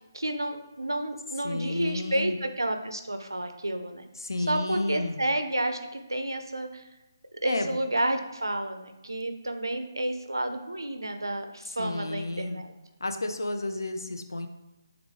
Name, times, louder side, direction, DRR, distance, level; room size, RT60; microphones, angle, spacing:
voice 1, 0.1-4.0 4.5-6.8 7.4-12.7, right 1 dB, 85° right, 7 dB, 0.5 m, -30 dB
voice 2, 1.4-2.4 4.2-5.2 7.4-7.8 11.7-12.7 13.0-14.5, left 2 dB, 75° left, 6 dB, 0.4 m, -32 dB
3.5 x 3.1 x 3.5 m, 1.0 s
figure-of-eight pair, 150°, 2 cm